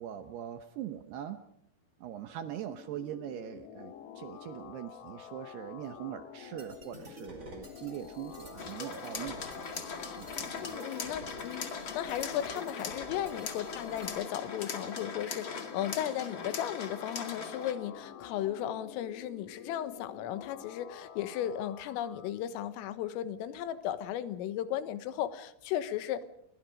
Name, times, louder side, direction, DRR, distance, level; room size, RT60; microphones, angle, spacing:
voice 1, 0.0-1.4 2.0-9.9 10.2-10.8, right 11 dB, 75° right, 9 dB, 2.5 m, -42 dB
sound 1, 2.4-22.3, left 9 dB, 65° left, 3.3 m, -48 dB
sound 2, 6.6-14.1, right 2 dB, 20° right, 4.6 m, -50 dB
sound 3, 8.6-17.7, left 5 dB, 45° left, 1.5 m, -40 dB
voice 2, 10.6-26.2, left 11 dB, 85° left, 12 dB, 3.8 m, -35 dB
30.0 x 23.0 x 5.2 m, 0.72 s
omnidirectional pair, 5.8 m